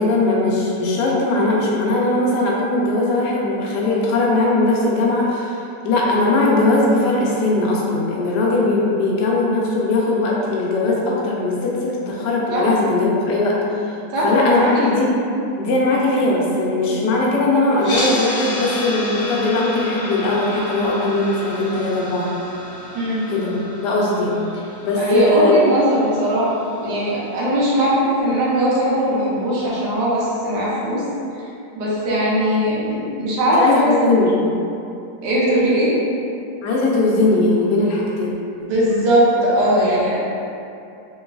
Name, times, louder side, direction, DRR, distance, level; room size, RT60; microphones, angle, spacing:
voice 1, 0.0-13.6 13.8-13.9 14.2-15.2 15.6-22.3 23.3-23.5 23.8-25.5 33.5-34.6 36.6-38.3, left 2 dB, 85° left, -4 dB, 1.2 m, -19 dB
voice 2, 14.1-14.9 22.9-23.2 25.0-31.0 31.8-34.1 35.2-35.9 38.6-40.2, equal, 85° right, -7 dB, 1.4 m, -19 dB
sound 1, 17.8-27.9, left 1 dB, 60° left, 1.1 m, -31 dB
3.2 x 3.1 x 2.3 m, 2.6 s
omnidirectional pair, 1.8 m